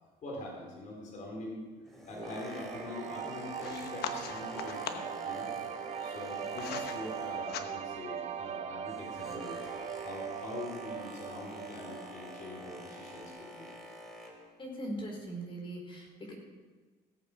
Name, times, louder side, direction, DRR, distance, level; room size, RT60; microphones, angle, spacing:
voice 1, 0.2-1.6 2.1-5.5 6.0-9.6 10.0-13.7, left 2 dB, 50° left, -3 dB, 4.1 m, -43 dB
Boat Water vehicle, 1.7-7.8 8.1-14.5 15.2-15.3, equal, ahead, 3.1 m, -47 dB
sound 1, 2.2-13.3, right 8 dB, 40° right, 0.6 m, -41 dB
sound 2, 3.6-5.2 6.0-7.0 7.3-8.0, left 8 dB, 70° left, 1.1 m, -41 dB
voice 2, 14.6-16.3, right 1 dB, 30° left, 0 dB, 4.4 m, -40 dB
17.5 x 8.5 x 5.1 m, 1.3 s
cardioid pair, 110°, 17 cm